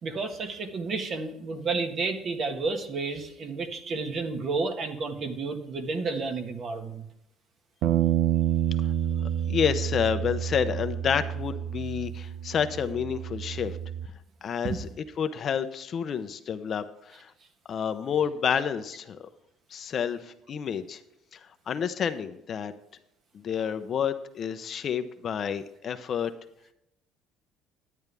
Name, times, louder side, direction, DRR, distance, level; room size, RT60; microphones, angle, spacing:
voice 1, 0.0-7.0 14.6-14.8, right 4 dB, 45° right, 5 dB, 1.6 m, -31 dB
Bass guitar, 7.8-14.1, right 11 dB, 70° right, 0.7 m, -29 dB
voice 2, 9.5-13.8 14.4-14.9 15.2-17.3 17.7-19.3 19.7-21.0 21.3-21.4 21.7-22.7 23.3-26.3, left 7 dB, 45° left, 10 dB, 0.7 m, -29 dB
11.0 x 9.6 x 3.4 m, 0.80 s
cardioid pair, 120°, 0 cm